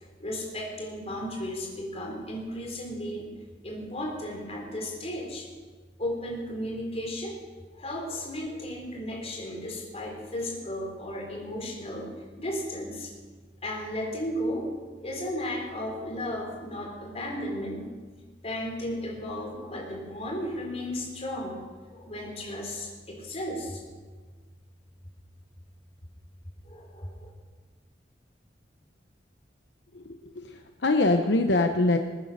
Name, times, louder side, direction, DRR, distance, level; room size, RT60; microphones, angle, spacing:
voice 1, 0.2-3.3 3.6-5.5 6.0-7.4 7.7-12.1 12.4-13.1 13.6-14.7 15.0-17.9 18.4-21.6 21.9-23.8 26.7-27.3, left 1 dB, 35° left, -1 dB, 3.9 m, -34 dB
voice 2, 30.5-32.0, left 2 dB, 70° left, 6 dB, 0.9 m, -23 dB
21.0 x 9.3 x 6.5 m, 1.4 s
head